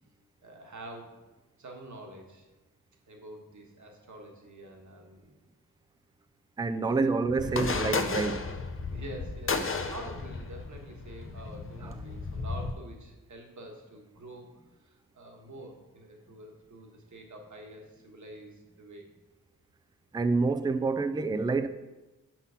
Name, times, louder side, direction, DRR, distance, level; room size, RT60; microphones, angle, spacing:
voice 1, 0.4-1.2 1.6-2.5 3.1-5.4 6.9-7.9 8.9-19.0, right 1 dB, 50° right, 1.5 m, -47 dB
voice 2, 6.6-8.5 11.8-11.9 20.1-21.7, right 3 dB, 10° right, 0.4 m, -28 dB
sound 1, 7.4-12.7, left 4 dB, 35° left, 0.7 m, -33 dB
6.1 x 5.6 x 5.7 m
wide cardioid pair, 85°, 36 cm